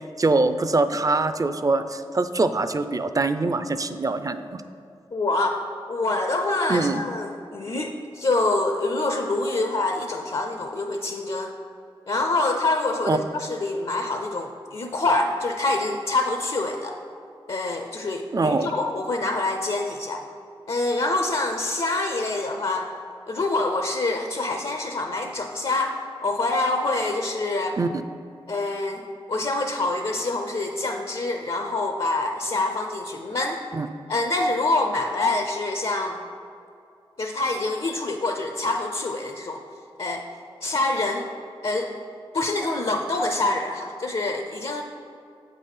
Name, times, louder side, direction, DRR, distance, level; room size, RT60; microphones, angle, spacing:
voice 1, 0.2-4.6 6.7-7.0 13.1-13.2 18.3-18.7 27.8-28.0 33.7-33.9, right 3 dB, 35° right, 11 dB, 0.4 m, -23 dB
voice 2, 5.1-5.6 5.9-11.5 12.1-16.9 17.5-20.2 20.7-22.9 23.3-27.8 28.5-33.6 34.1-36.2 37.2-39.6 40.0-40.3 40.6-41.3 41.6-42.0 42.3-44.8, left 2 dB, 60° left, 4 dB, 0.5 m, -26 dB
7.8 x 4.0 x 5.4 m, 2.6 s
cardioid pair, 55°, 10 cm